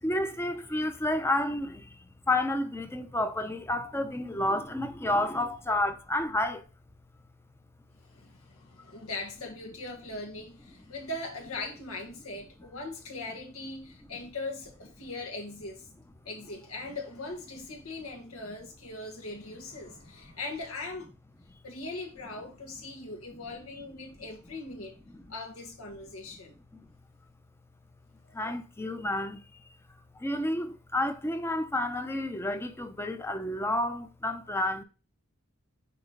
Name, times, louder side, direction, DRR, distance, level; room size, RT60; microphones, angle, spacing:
voice 1, 0.0-6.6 28.3-29.7 30.1-34.8, left 1 dB, 10° left, 0.6 m, -30 dB
voice 2, 8.0-15.9 16.2-21.1 21.6-25.0 25.3-26.6 28.2-28.4, left 2 dB, 80° left, 1.6 m, -40 dB
6.0 x 4.4 x 3.8 m
head